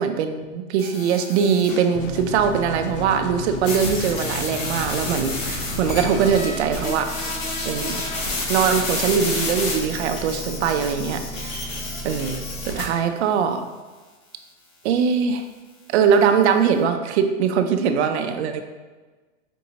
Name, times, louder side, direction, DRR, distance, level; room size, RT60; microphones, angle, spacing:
voice 1, 0.0-7.1 7.6-8.0 8.5-11.7 12.0-13.7 14.8-15.4 15.9-18.6, right 7 dB, 60° right, 7 dB, 0.5 m, -22 dB
sound 1, 0.8-1.9 3.6-12.8, left 2 dB, 80° left, 1.5 m, -30 dB
sound 2, 2.0-6.3, left 2 dB, 55° left, 0.5 m, -33 dB
sound 3, 4.8-12.8, right 1 dB, 5° left, 0.4 m, -36 dB
5.2 x 2.7 x 2.8 m, 1.3 s
supercardioid pair, 150°, 39 cm